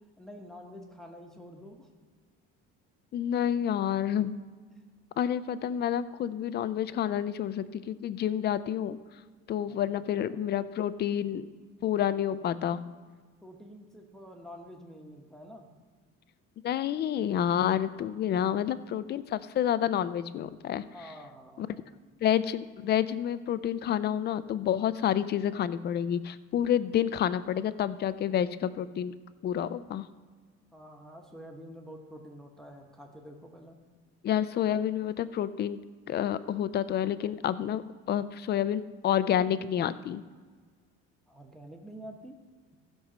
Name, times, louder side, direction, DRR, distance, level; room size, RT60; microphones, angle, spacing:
voice 1, 0.0-1.9 9.6-10.4 13.4-15.7 20.8-22.0 30.7-33.8 41.3-42.4, equal, ahead, 1 dB, 1.0 m, -48 dB
voice 2, 3.1-4.4 5.2-9.0 9.5-11.5 11.8-12.8 16.6-20.8 21.6-21.7 22.2-29.1 29.4-30.1 34.2-35.8 36.1-37.8 38.1-40.2, left 10 dB, 35° left, 15 dB, 0.4 m, -29 dB
15.5 x 5.4 x 6.1 m, 1.6 s
cardioid pair, 150°, 29 cm